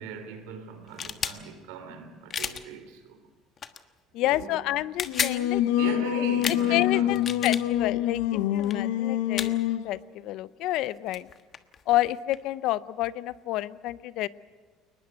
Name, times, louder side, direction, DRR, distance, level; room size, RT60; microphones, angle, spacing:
voice 1, 0.0-3.2 4.2-4.5 5.8-7.2, right 6 dB, 90° right, 3.2 m, -39 dB
sound 1, 0.9-1.4 2.3-2.6 3.6-3.8 4.8-5.4 6.4-6.6 7.1-7.6 8.6-8.7 9.4-9.5 10.9-11.0 11.1-12.4, left 7 dB, 40° left, 1.3 m, -31 dB
voice 2, 4.1-5.6 6.2-9.6 9.8-11.3 11.9-14.3, left 15 dB, 70° left, 0.6 m, -29 dB
Singing, 5.1-9.9, left 12 dB, 85° left, 1.0 m, -26 dB
22.0 x 20.0 x 8.1 m
supercardioid pair, 95°, 0 cm